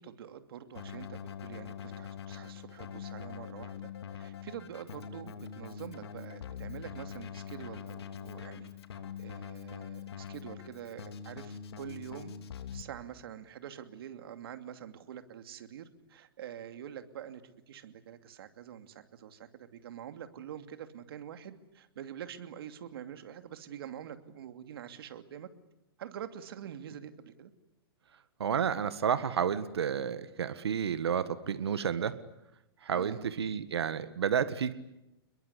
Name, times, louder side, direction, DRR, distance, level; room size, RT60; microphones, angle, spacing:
voice 1, 0.0-3.7 4.1-8.7 9.2-12.3 12.7-17.4 17.7-25.5 26.0-27.5 32.9-33.3, right 9 dB, 70° right, 8 dB, 2.7 m, -45 dB
Keyboard (musical), 0.7-12.8, left 8 dB, 80° left, 3.0 m, -43 dB
voice 2, 28.4-32.1 32.8-34.7, right 7 dB, 90° right, 12 dB, 1.7 m, -31 dB
29.5 x 22.0 x 8.4 m, 0.89 s
hypercardioid pair, 140°, 13 cm